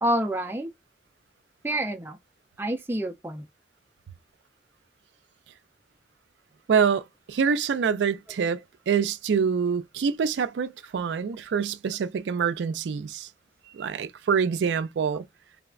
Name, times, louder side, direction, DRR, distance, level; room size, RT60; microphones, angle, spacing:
voice 1, 0.0-0.7 1.6-2.2 2.6-3.5, right 1 dB, 10° right, 0.4 m, -28 dB
voice 2, 6.7-8.6 8.9-13.3 13.7-15.2, right 6 dB, 90° right, 0.4 m, -25 dB
3.3 x 2.0 x 2.3 m
head